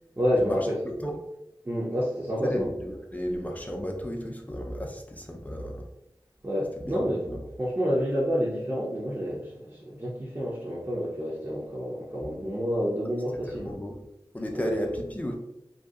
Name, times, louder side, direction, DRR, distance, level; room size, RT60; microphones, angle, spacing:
voice 1, 0.2-0.8 1.6-2.7 6.4-7.2 7.6-13.7 14.5-14.7, equal, 30° right, -6 dB, 0.6 m, -29 dB
voice 2, 0.8-1.1 2.4-5.9 6.8-7.4 13.4-13.9 14.3-15.3, equal, 15° left, 1 dB, 0.5 m, -33 dB
2.7 x 2.3 x 2.3 m, 0.86 s
wide cardioid pair, 55°, 9 cm